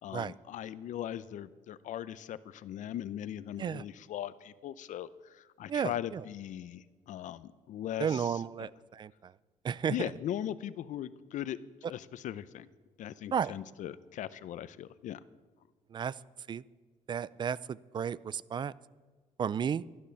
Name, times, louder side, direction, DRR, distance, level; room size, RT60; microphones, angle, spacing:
voice 1, 0.0-8.4 9.9-11.6 11.9-12.7 13.0-15.2, left 11 dB, 65° left, 17 dB, 0.7 m, -39 dB
voice 2, 5.7-6.2 8.0-9.3 9.6-9.9 13.3-13.5 15.9-16.1 16.5-16.6 17.1-18.7 19.4-19.8, right 7 dB, 35° right, 21 dB, 0.4 m, -33 dB
12.5 x 12.0 x 7.0 m, 1.4 s
cardioid pair, 120°, 14 cm